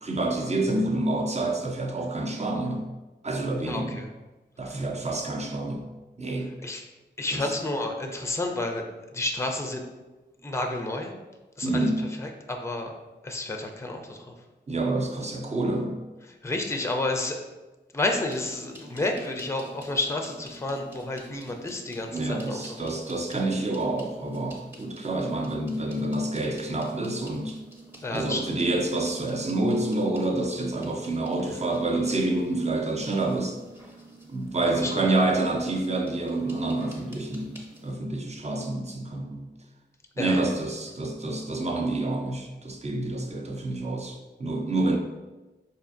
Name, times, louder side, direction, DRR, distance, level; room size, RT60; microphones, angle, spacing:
voice 1, 0.0-2.9 3.2-4.0 4.6-5.9 6.2-6.5 7.3-7.4 11.6-12.0 14.7-16.0 22.1-27.6 28.1-33.6 34.3-37.6 37.8-39.5 40.2-45.0, right 2 dB, 35° right, 2 dB, 0.6 m, -28 dB
voice 2, 3.6-4.1 4.6-4.8 6.6-6.9 7.2-9.8 10.4-11.1 11.6-12.9 13.2-14.3 16.3-17.4 17.9-22.9 28.0-28.5 34.8-35.0 40.2-40.4, left 2 dB, 15° left, 3 dB, 0.4 m, -31 dB
sound 1, 18.2-37.9, right 2 dB, 10° right, 0.9 m, -49 dB
4.3 x 2.7 x 2.5 m, 1.1 s
wide cardioid pair, 55°, 19 cm